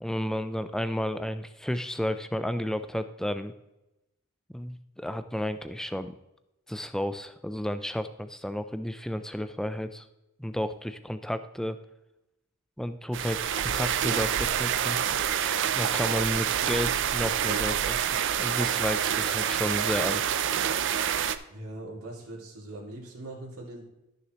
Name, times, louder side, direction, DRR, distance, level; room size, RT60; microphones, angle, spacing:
voice 1, 0.0-3.5 4.5-6.1 6.7-10.1 10.4-11.8 12.8-15.0 15.8-18.0 18.4-20.2, equal, ahead, 10 dB, 0.4 m, -32 dB
sound 1, 13.1-21.4, right 9 dB, 55° right, 0.5 m, -27 dB
voice 2, 21.5-23.8, right 1 dB, 75° right, -2 dB, 2.5 m, -41 dB
14.0 x 6.6 x 3.0 m, 0.94 s
head